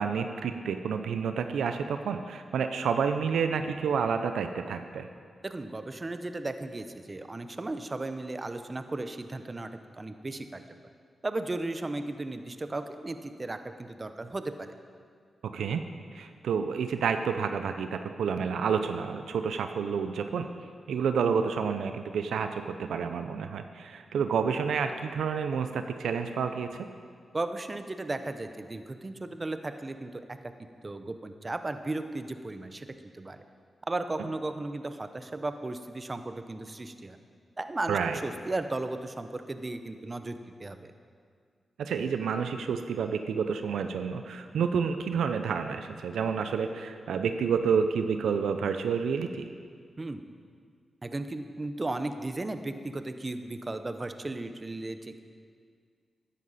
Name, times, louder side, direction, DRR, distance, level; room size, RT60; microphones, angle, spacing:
voice 1, 0.0-5.1 15.5-15.8 16.1-20.5 20.9-26.9 37.9-38.2 41.8-49.5, right 6 dB, 90° right, 8 dB, 0.5 m, -29 dB
voice 2, 5.4-9.7 10.0-10.6 11.2-14.7 27.3-30.4 30.8-32.9 33.1-33.4 33.9-37.2 37.6-40.9 50.0-50.2 51.0-55.2, right 2 dB, 35° right, 9 dB, 0.8 m, -35 dB
13.0 x 10.0 x 4.1 m, 2.1 s
cardioid pair, 55°, 0 cm